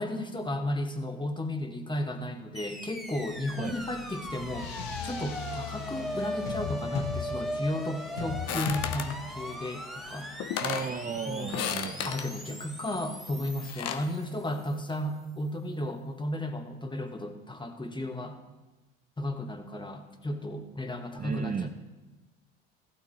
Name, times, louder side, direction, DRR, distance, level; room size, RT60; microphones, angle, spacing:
voice 1, 0.0-4.7 5.0-10.3 11.3-11.5 12.0-18.4 19.2-21.7, left 1 dB, 15° left, 5 dB, 1.8 m, -34 dB
sound 1, 2.5-14.8, equal, ahead, 1.6 m, -39 dB
sound 2, 3.7-14.1, left 7 dB, 85° left, 1.0 m, -41 dB
sound 3, 8.5-9.2 10.1-10.2 10.4-10.9 11.5-12.3 13.5-14.1, left 9 dB, 60° left, 1.1 m, -34 dB
voice 2, 10.6-12.2 21.2-21.7, right 6 dB, 30° right, 7 dB, 0.8 m, -34 dB
15.0 x 12.5 x 4.4 m, 1.1 s
supercardioid pair, 80°, 29 cm